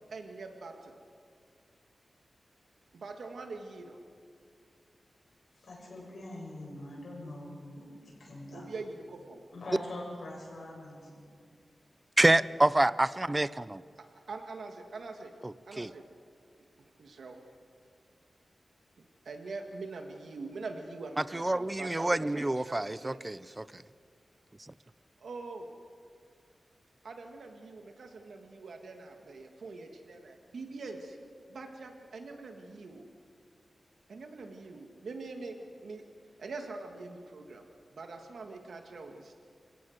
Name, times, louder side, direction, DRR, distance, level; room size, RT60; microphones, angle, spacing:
voice 1, 0.1-1.0 2.9-4.0 8.5-9.4 12.3-12.4 14.0-15.3 15.6-16.0 16.8-17.4 19.3-23.2 25.2-25.7 27.0-31.2 31.5-33.1 34.1-36.0 36.4-37.6 37.9-39.3, right 3 dB, 80° right, 4 dB, 1.8 m, -44 dB
voice 2, 5.6-8.6 9.5-11.1, left 1 dB, 65° left, -3 dB, 7.7 m, -43 dB
voice 3, 12.2-13.8 15.4-15.9 21.3-23.6, right 1 dB, 15° right, 18 dB, 0.4 m, -27 dB
29.5 x 17.5 x 6.5 m, 2.2 s
wide cardioid pair, 150°, 0 cm